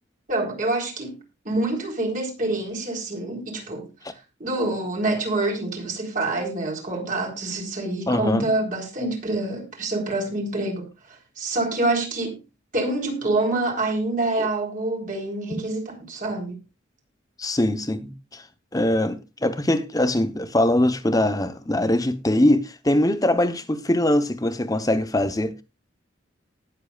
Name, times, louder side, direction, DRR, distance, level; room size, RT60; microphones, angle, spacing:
voice 1, 0.3-1.2 1.4-3.9 4.4-12.4 12.7-16.6, right 2 dB, 45° right, 4.1 m, -26 dB
voice 2, 8.1-8.5 14.4-14.5 17.4-18.4 18.7-25.6, left 1 dB, 20° left, 1.0 m, -22 dB
19.0 x 7.5 x 2.5 m
head